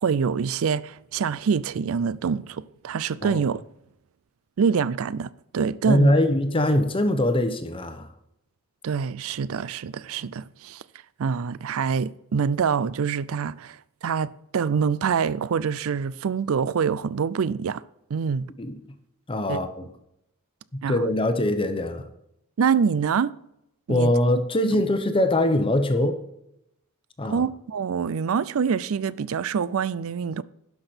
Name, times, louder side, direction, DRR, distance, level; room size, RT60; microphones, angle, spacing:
voice 1, 0.0-3.6 4.6-6.1 8.8-10.8 11.2-17.8 18.1-18.5 19.5-19.6 20.8-21.0 22.6-23.3 23.9-24.1 24.7-24.8 27.3-30.4, right 6 dB, 65° right, 0.4 m, -25 dB
voice 2, 5.8-8.1 18.6-18.8 19.3-19.9 20.7-22.1 23.9-26.2 27.2-27.4, left 1 dB, 25° left, 0.8 m, -22 dB
11.5 x 5.9 x 4.4 m
head